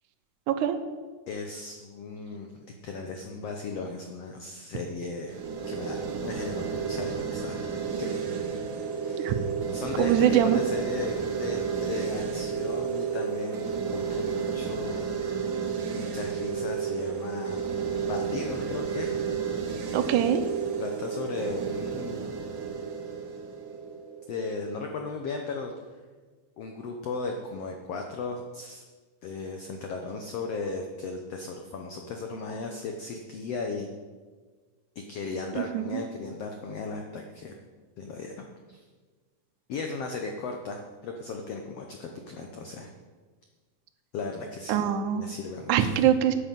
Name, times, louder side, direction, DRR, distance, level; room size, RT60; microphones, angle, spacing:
voice 1, 0.5-0.8 9.2-9.3 10.0-10.6 19.9-20.4 35.6-36.0 44.7-45.2 45.7-46.3, right 10 dB, 75° right, 8 dB, 2.1 m, -23 dB
voice 2, 1.3-5.3 5.7-6.0 6.2-7.6 8.0-8.1 9.0-9.4 9.7-15.1 15.9-17.6 18.0-19.1 20.8-22.3 24.3-25.7 26.6-28.8 29.2-33.9 35.1-37.5 38.0-38.8 39.7-42.9 44.1-44.9 45.1-46.1, left 4 dB, 80° left, 3 dB, 1.4 m, -36 dB
sound 1, 5.3-24.3, right 6 dB, 90° right, 1.0 m, -32 dB
9.1 x 8.3 x 7.4 m, 1.4 s
omnidirectional pair, 4.0 m